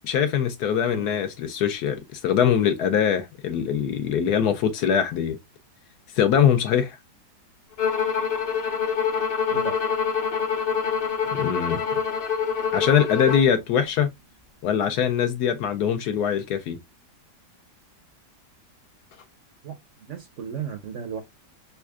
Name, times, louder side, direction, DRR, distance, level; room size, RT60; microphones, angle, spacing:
voice 1, 0.0-5.4 6.1-7.0 11.4-11.8 12.7-14.1 14.6-16.8, left 8 dB, 70° left, 1.1 m, -22 dB
Bowed string instrument, 7.8-13.5, left 6 dB, 45° left, 0.7 m, -26 dB
voice 2, 20.1-21.2, right 7 dB, 65° right, 0.8 m, -34 dB
5.2 x 2.3 x 2.3 m
omnidirectional pair, 1.9 m